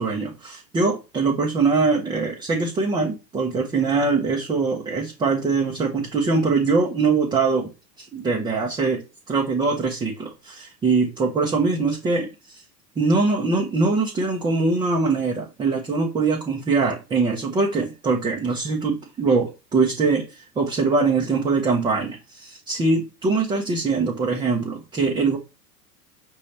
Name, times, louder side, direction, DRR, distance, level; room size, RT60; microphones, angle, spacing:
voice 1, 0.0-7.7 8.0-9.0 9.3-12.6 13.0-25.4, right 4 dB, 10° right, -1 dB, 0.4 m, -22 dB
5.3 x 2.9 x 3.2 m, 0.28 s
hypercardioid pair, 100°, 50 cm